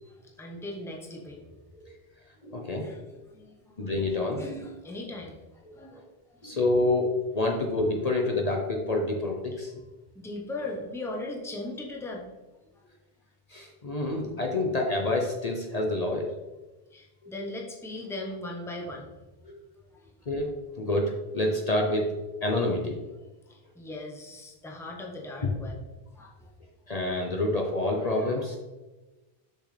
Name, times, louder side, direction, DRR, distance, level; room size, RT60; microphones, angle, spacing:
voice 1, 0.1-1.4 2.8-3.8 4.3-6.6 9.5-9.6 10.1-12.3 12.7-12.9 16.9-19.1 19.9-20.1 23.5-25.8 26.1-26.7, left 2 dB, 5° left, -1 dB, 0.9 m, -39 dB
voice 2, 2.4-2.9 3.8-4.4 5.9-6.0 6.4-9.8 13.5-16.4 17.2-17.3 19.4-19.6 20.3-20.5 20.8-22.1 22.4-23.0 25.4-25.5 26.9-28.6, left 2 dB, 40° left, 1 dB, 0.8 m, -27 dB
6.6 x 6.1 x 3.3 m, 1.1 s
omnidirectional pair, 1.0 m